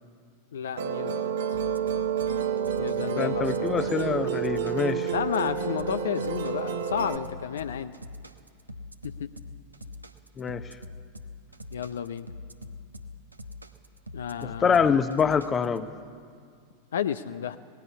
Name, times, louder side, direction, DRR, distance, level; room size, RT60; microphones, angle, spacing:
voice 1, 0.5-1.4 2.8-3.9 5.1-8.0 9.0-9.3 11.7-12.3 14.1-15.0 16.9-17.6, left 8 dB, 65° left, 11 dB, 0.5 m, -32 dB
Musical instrument, 0.8-7.2, right 8 dB, 60° right, 1.2 m, -29 dB
sound 1, 1.5-15.8, left 2 dB, 85° right, 1.0 m, -43 dB
voice 2, 3.2-5.1 10.4-10.6 14.4-15.9, left 6 dB, 20° left, 12 dB, 0.9 m, -25 dB
19.0 x 16.5 x 8.6 m, 2.1 s
figure-of-eight pair, 90°, 0 cm